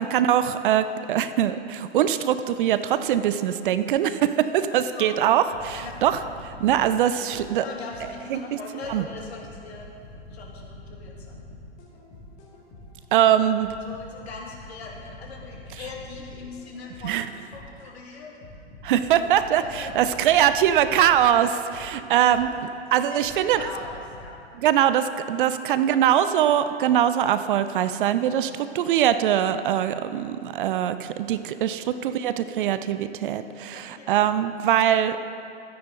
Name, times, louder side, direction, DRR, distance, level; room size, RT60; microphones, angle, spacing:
voice 1, 0.0-7.6 8.3-8.4 8.9-9.0 13.1-13.7 17.0-17.3 18.8-22.5 22.9-23.7 24.6-35.2, right 10 dB, 50° right, 11 dB, 0.5 m, -22 dB
voice 2, 4.7-5.1 5.8-6.0 7.0-7.3 7.6-9.9 10.3-11.5 13.8-18.4 19.6-20.5 21.5-21.6 22.3-22.5 23.1-24.5 25.6-26.2 31.9-32.2 33.7-34.3 34.8-34.9, left 4 dB, 65° left, -1 dB, 2.2 m, -41 dB
sound 1, 5.5-8.3 8.8-13.1 13.6-17.9 18.4-22.7 23.2-24.3, left 2 dB, 35° left, 2.4 m, -45 dB
13.0 x 9.8 x 3.9 m, 2.6 s
hypercardioid pair, 110°, 34 cm